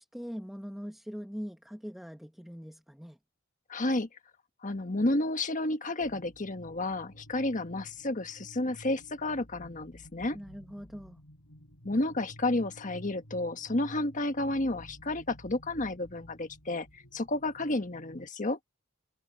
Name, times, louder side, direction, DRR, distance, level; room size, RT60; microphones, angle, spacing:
voice 1, 0.0-3.2 10.3-11.2, equal, ahead, 1.3 m, -42 dB
voice 2, 3.7-4.1 4.6-10.4 11.8-18.6, left 2 dB, 40° left, 1.4 m, -31 dB
sound 1, 6.0-18.3, equal, 85° left, 7.1 m, -52 dB
head